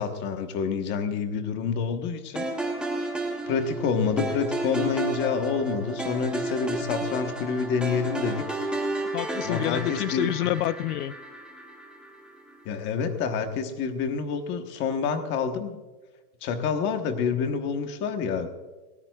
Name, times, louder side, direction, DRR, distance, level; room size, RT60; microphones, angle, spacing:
voice 1, 0.0-2.4 3.5-8.4 9.4-10.3 12.6-15.8 16.4-18.5, left 6 dB, 25° left, 6 dB, 1.2 m, -28 dB
sound 1, 2.4-12.6, right 2 dB, ahead, 0.8 m, -32 dB
voice 2, 9.1-11.1, left 13 dB, 70° left, 14 dB, 0.7 m, -27 dB
18.5 x 18.0 x 2.4 m, 1.2 s
supercardioid pair, 175°, 47 cm